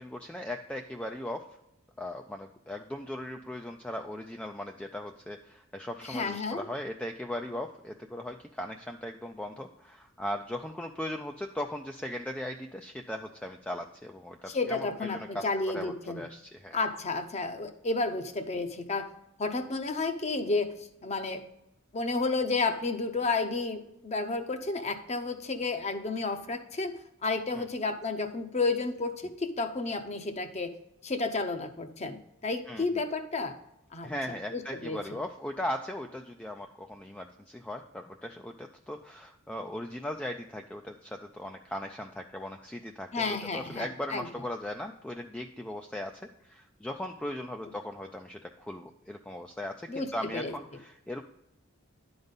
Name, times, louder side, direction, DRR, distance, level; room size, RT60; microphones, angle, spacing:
voice 1, 0.0-1.5 2.0-15.5 15.7-16.8 27.5-27.6 32.7-32.8 34.0-51.2, left 1 dB, 5° left, 4 dB, 0.3 m, -38 dB
voice 2, 6.0-6.6 14.5-16.2 16.7-19.1 19.4-21.4 21.9-26.9 27.2-30.7 31.0-32.2 32.4-33.6 33.9-34.1 34.5-35.0 43.1-44.2 49.9-50.1 50.3-50.6, left 3 dB, 30° left, 7 dB, 0.7 m, -31 dB
10.5 x 4.0 x 5.2 m, 0.84 s
head